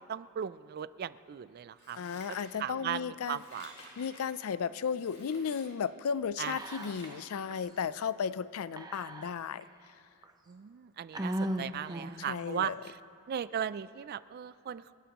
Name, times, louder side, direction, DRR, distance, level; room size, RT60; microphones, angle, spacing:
voice 1, 0.0-2.0 2.6-3.7 6.4-7.0 10.5-12.7 13.3-14.9, right 9 dB, 45° right, 16 dB, 0.3 m, -37 dB
Scissors, 1.8-2.9 3.2-4.3 4.8-5.7 6.1-7.1 7.5-7.6, left 2 dB, 55° left, 3.6 m, -53 dB
voice 2, 2.0-3.4 4.0-9.6 12.2-12.8, left 6 dB, 80° left, 16 dB, 0.4 m, -34 dB
Whispering, 6.5-7.2 7.5-7.6 8.8-9.6 10.2-10.3 11.1-12.3, right 1 dB, 20° right, 0.7 m, -36 dB
29.5 x 12.0 x 3.0 m, 2.9 s
head